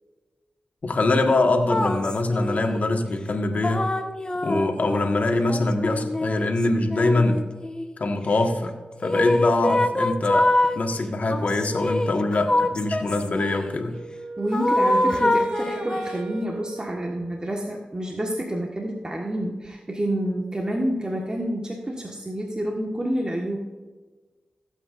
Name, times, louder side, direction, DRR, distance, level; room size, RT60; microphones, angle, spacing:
voice 1, 0.8-3.9 4.4-7.5 8.0-8.7 9.0-14.0, left 2 dB, 60° left, 3 dB, 1.6 m, -23 dB
sound 1, 1.7-2.9 3.6-8.0 9.0-10.8 11.3-13.7 14.5-16.3, left 1 dB, 30° left, 1.0 m, -25 dB
Wind instrument woodwind instrument, 13.9-17.8, right 4 dB, 55° right, 0.7 m, -38 dB
voice 2, 14.4-23.6, right 1 dB, 30° right, 0 dB, 1.5 m, -28 dB
16.0 x 8.4 x 2.6 m, 1.3 s
cardioid pair, 60°, 3 cm